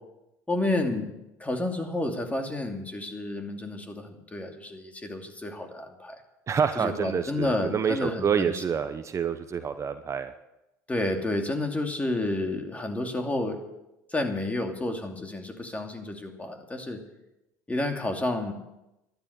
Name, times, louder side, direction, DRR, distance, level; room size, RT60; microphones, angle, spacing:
voice 1, 0.5-1.1 1.4-6.2 6.8-8.5 10.9-13.6 14.1-17.0 17.7-18.5, left 2 dB, 15° left, 4 dB, 2.7 m, -30 dB
voice 2, 6.5-10.3, right 7 dB, 35° right, 9 dB, 1.0 m, -27 dB
12.5 x 11.5 x 8.2 m, 0.92 s
supercardioid pair, 85°, 9 cm